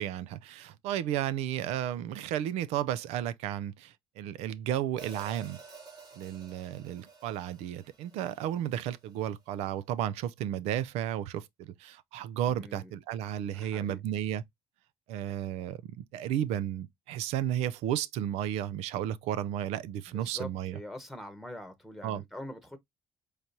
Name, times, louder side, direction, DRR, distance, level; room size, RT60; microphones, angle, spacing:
voice 1, 0.0-5.6 6.2-14.4 15.1-20.8 22.0-22.2, right 11 dB, 85° right, 0.4 m, -33 dB
Hi-hat, 5.0-9.2, right 4 dB, 40° right, 2.2 m, -52 dB
voice 2, 12.4-12.9 13.5-14.0 20.1-22.8, left 1 dB, ahead, 1.2 m, -44 dB
5.0 x 3.1 x 2.7 m
supercardioid pair, 80°, 11 cm